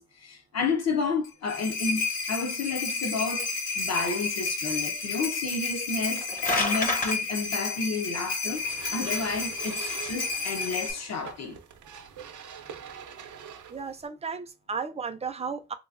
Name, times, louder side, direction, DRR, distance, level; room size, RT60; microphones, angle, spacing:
voice 1, 0.0-6.3 6.6-11.6, left 4 dB, 60° left, 0.8 m, -31 dB
sound 1, 1.2-10.9, left 4 dB, 85° left, 1.4 m, -31 dB
sound 2, 6.0-7.1, left 2 dB, 30° left, 0.7 m, -27 dB
sound 3, 8.6-14.1, right 7 dB, 90° right, 0.6 m, -44 dB
voice 2, 13.7-15.7, right 5 dB, 20° right, 0.4 m, -34 dB
3.3 x 2.9 x 2.5 m
wide cardioid pair, 120°, 29 cm